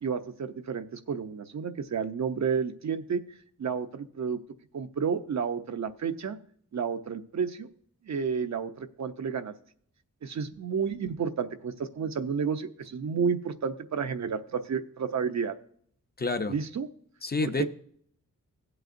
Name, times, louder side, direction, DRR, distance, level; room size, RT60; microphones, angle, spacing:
voice 1, 0.0-3.2 3.6-4.4 4.7-6.4 6.7-7.7 8.0-9.5 10.2-15.6 16.5-16.9 17.4-17.7, right 6 dB, 60° right, 0.7 m, -31 dB
voice 2, 16.2-16.5 17.2-17.7, left 3 dB, 30° left, 0.5 m, -28 dB
16.5 x 7.9 x 2.6 m
wide cardioid pair, 120°, 32 cm